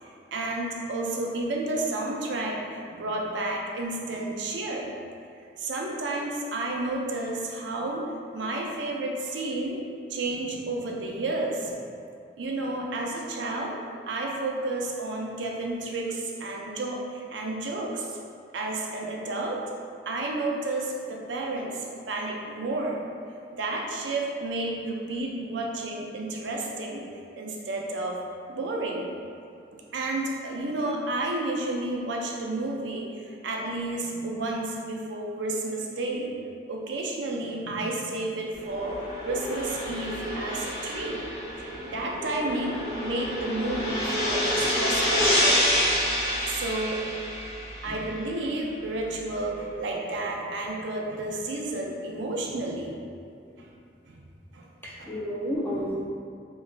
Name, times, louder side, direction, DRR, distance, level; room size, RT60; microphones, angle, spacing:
voice 1, 0.0-4.9 5.6-8.0 8.3-9.8 10.1-11.7 12.4-13.7 14.1-18.2 18.5-19.6 20.1-23.0 23.5-27.0 27.4-28.2 28.5-29.1 29.7-36.3 36.7-39.0 39.2-41.2 41.6-45.6 46.5-47.0 47.8-53.0 53.6-53.7 54.1-54.2 54.5-54.7 55.0-55.1, right 2 dB, 80° right, -1 dB, 0.5 m, -31 dB
sound 1, 38.5-48.1, equal, 55° left, 1.4 m, -28 dB
voice 2, 54.8-56.1, equal, 10° left, -5 dB, 0.4 m, -32 dB
3.2 x 3.1 x 2.4 m, 2.4 s
head